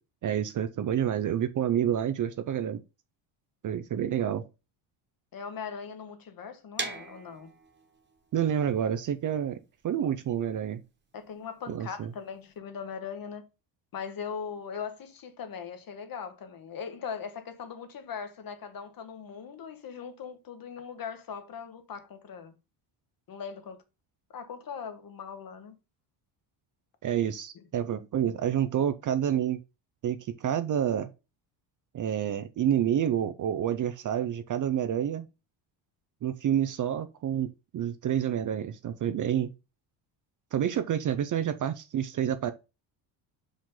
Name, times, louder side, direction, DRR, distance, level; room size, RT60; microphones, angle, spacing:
voice 1, 0.2-2.8 3.6-4.5 8.3-10.8 11.7-12.1 27.0-29.6 30.0-31.1 31.9-35.3 36.2-39.5 40.5-42.5, right 9 dB, 40° right, 0.5 m, -28 dB
voice 2, 5.3-7.5 11.1-13.4 13.9-22.5 23.3-23.8 24.3-25.7 27.5-27.6, left 6 dB, 45° left, 1.2 m, -40 dB
sound 1, 6.8-12.6, right 4 dB, 20° right, 1.4 m, -42 dB
5.5 x 5.1 x 3.8 m
cardioid pair, 115°, 49 cm